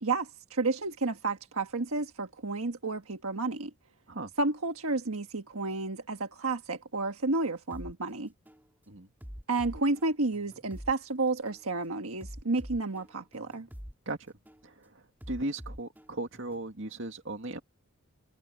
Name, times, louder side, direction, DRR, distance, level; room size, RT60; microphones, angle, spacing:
voice 1, 0.0-3.7 4.4-8.3 9.5-13.7, right 3 dB, 80° right, 1.5 m, -31 dB
sound 1, 7.7-7.9 8.5-8.7 9.2-10.9 11.5-11.7 12.2-13.9 14.5-14.7 15.2-16.7, equal, 10° right, 3.3 m, -45 dB
voice 2, 15.3-17.6, right 2 dB, 60° right, 2.3 m, -36 dB
head